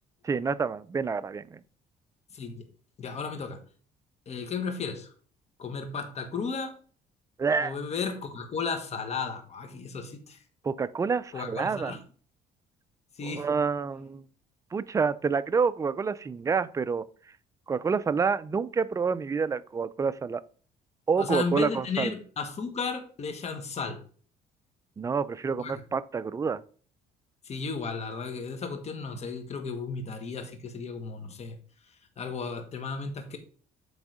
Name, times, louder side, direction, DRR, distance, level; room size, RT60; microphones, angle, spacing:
voice 1, 0.2-1.6 7.4-7.8 10.6-12.0 13.2-14.3 14.7-17.0 17.7-20.4 21.1-22.1 25.0-26.6, right 5 dB, 20° right, 0.4 m, -28 dB
voice 2, 2.3-2.7 3.0-3.6 4.3-5.1 5.6-6.7 7.6-10.4 11.3-12.0 13.2-13.5 21.2-24.0 25.6-25.8 27.4-31.6 32.2-33.4, left 5 dB, 40° left, 1.3 m, -34 dB
7.9 x 3.6 x 4.8 m
cardioid pair, 110°, 17 cm